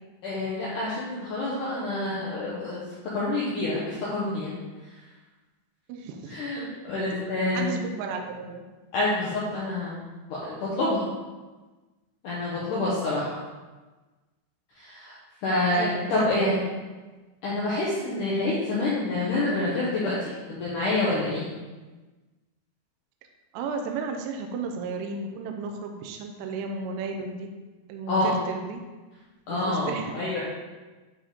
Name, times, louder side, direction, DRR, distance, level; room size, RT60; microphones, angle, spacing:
voice 1, 0.2-2.8 3.1-4.5 6.3-7.7 8.9-11.1 12.2-13.3 14.8-15.2 15.4-16.6 17.4-21.5 28.1-28.4 29.5-30.4, left 2 dB, 85° left, -7 dB, 1.8 m, -27 dB
voice 2, 5.9-6.7 7.5-8.6 15.7-16.6 23.5-27.5 27.9-28.8 29.5-30.2, right 4 dB, 80° right, 3 dB, 2.6 m, -34 dB
9.8 x 4.0 x 3.6 m, 1.2 s
omnidirectional pair, 5.4 m